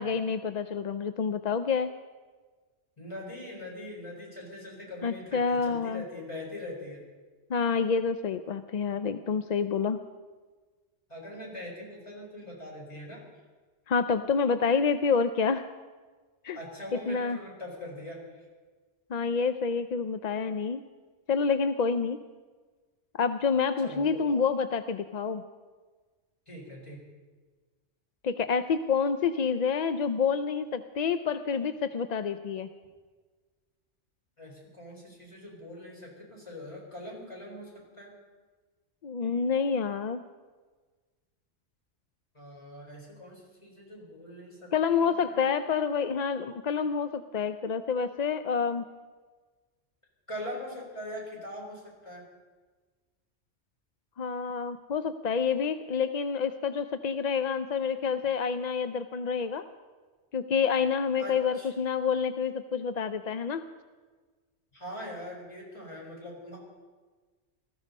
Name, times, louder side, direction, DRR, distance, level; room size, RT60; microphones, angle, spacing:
voice 1, 0.0-1.9 5.0-6.0 7.5-10.0 13.9-15.7 16.4-16.6 16.9-17.4 19.1-20.8 21.3-22.2 23.1-25.4 28.2-32.7 39.0-40.2 44.7-48.8 54.2-59.6 60.3-63.6, left 5 dB, 50° left, 11 dB, 0.5 m, -28 dB
voice 2, 3.0-7.0 11.1-13.2 16.5-18.4 23.8-24.4 26.5-27.1 34.4-38.1 42.3-45.4 50.3-52.2 61.2-61.7 64.7-66.6, left 1 dB, 25° left, -2 dB, 4.4 m, -42 dB
18.5 x 14.0 x 5.3 m, 1.4 s
omnidirectional pair, 1.2 m